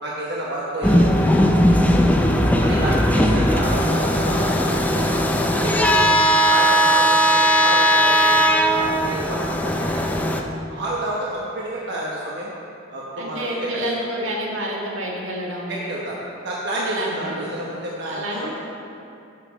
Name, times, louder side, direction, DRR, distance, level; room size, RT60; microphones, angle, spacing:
voice 1, 0.0-1.7 2.1-2.2 2.6-5.1 5.5-6.2 6.5-10.4 10.7-12.5 12.9-13.4 13.7-13.8 15.7-18.6, right 1 dB, 60° right, -5 dB, 1.1 m, -30 dB
sound 1, 0.8-10.4, equal, 10° left, 0.5 m, -18 dB
voice 2, 13.2-15.7 16.8-17.5 18.1-18.6, right 1 dB, 85° right, -3 dB, 1.8 m, -29 dB
11.0 x 7.2 x 4.1 m, 2.6 s
head